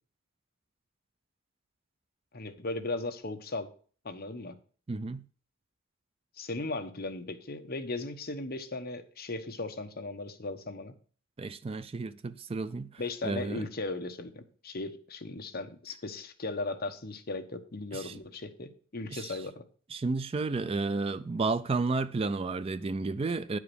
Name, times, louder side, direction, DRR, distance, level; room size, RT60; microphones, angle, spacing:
voice 1, 2.3-3.7 4.0-4.5 6.4-10.9 13.0-19.6, left 2 dB, 45° left, 1.0 m, -37 dB
voice 2, 4.9-5.3 11.4-13.7 17.9-18.2 19.1-19.4 19.9-23.6, right 3 dB, 25° right, 0.4 m, -32 dB
9.8 x 4.8 x 6.8 m
head